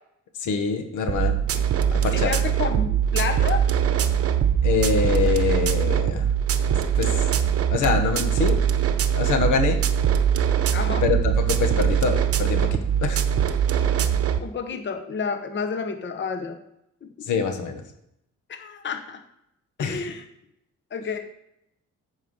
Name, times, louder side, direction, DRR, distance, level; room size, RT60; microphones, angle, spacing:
voice 1, 0.3-1.4 1.9-2.3 4.6-6.3 6.9-7.3 7.7-8.6 9.1-9.8 11.0-13.2 17.2-17.8 19.8-20.1, left 5 dB, 80° left, 6 dB, 1.4 m, -25 dB
sound 1, 1.1-14.4, right 9 dB, 50° right, 0.8 m, -22 dB
voice 2, 2.1-3.6 10.7-11.1 14.4-16.6 17.0-17.3 18.5-19.2 19.8-20.2 20.9-21.2, left 5 dB, 40° left, 7 dB, 1.0 m, -30 dB
9.1 x 4.8 x 6.4 m, 0.79 s
cardioid pair, 90°, 30 cm